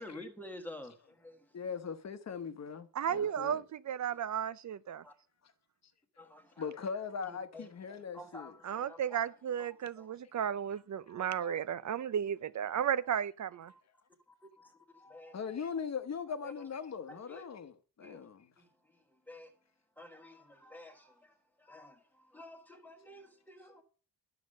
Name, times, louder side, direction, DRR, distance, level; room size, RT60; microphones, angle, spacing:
voice 1, 0.0-1.6 3.2-3.3 4.0-4.2 5.0-5.1 6.2-6.8 7.2-7.7 7.9-10.2 10.5-10.8 11.2-11.6 13.6-13.8 14.3-15.6 16.4-17.4 18.0-18.3 18.6-23.8, left 1 dB, 5° left, 1.4 m, -52 dB
voice 2, 1.5-3.7 5.4-5.5 6.6-8.6 10.2-10.3 15.3-18.5, left 6 dB, 40° left, 1.0 m, -40 dB
voice 3, 3.0-5.0 8.6-13.7, right 9 dB, 45° right, 0.4 m, -34 dB
11.5 x 6.7 x 6.4 m
wide cardioid pair, 150°, 40 cm